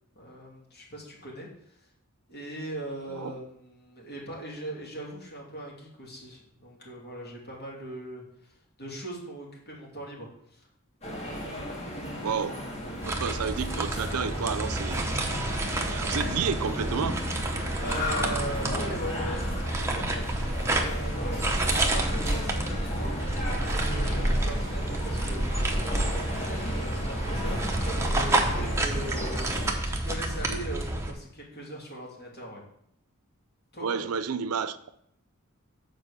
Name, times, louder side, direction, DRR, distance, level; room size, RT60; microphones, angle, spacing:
voice 1, 0.1-1.8 2.3-8.5 8.8-10.7 17.8-32.6 33.7-34.0, right 1 dB, 45° left, 2.8 m, -40 dB
sound 1, 11.0-29.7, left 1 dB, 30° left, 2.2 m, -36 dB
voice 2, 12.2-12.6 13.1-15.4 15.8-17.3 33.8-34.9, right 6 dB, 80° right, 0.5 m, -31 dB
sound 2, 13.0-31.1, right 1 dB, 10° right, 0.9 m, -29 dB
7.5 x 5.0 x 6.7 m
head